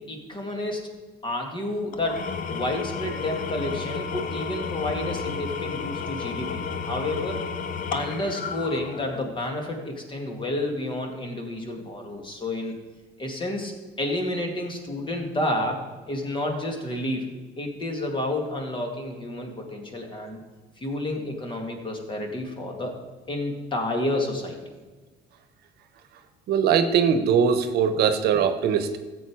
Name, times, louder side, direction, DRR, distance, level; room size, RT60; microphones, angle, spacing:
voice 1, 0.1-0.8 1.2-2.2 2.5-7.4 7.9-12.7 13.2-15.8 16.1-17.2 17.6-20.4 20.8-22.9 23.3-24.6, left 1 dB, 30° left, 2 dB, 2.3 m, -30 dB
Engine / Tools, 1.9-9.4, left 5 dB, 55° left, 1.0 m, -32 dB
voice 2, 26.5-29.0, right 7 dB, 70° right, 10 dB, 1.0 m, -21 dB
14.0 x 8.0 x 4.8 m, 1.3 s
cardioid pair, 110°, 17 cm